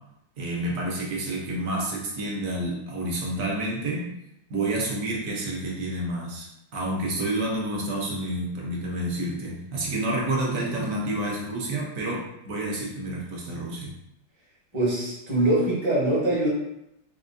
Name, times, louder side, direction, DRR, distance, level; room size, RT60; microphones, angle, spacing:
voice 1, 0.4-4.1 4.5-6.5 6.7-13.9, right 1 dB, 60° right, -3 dB, 0.9 m, -29 dB
voice 2, 14.7-16.5, right 1 dB, 25° right, -6 dB, 0.7 m, -23 dB
4.3 x 2.3 x 2.5 m, 0.84 s
omnidirectional pair, 2.1 m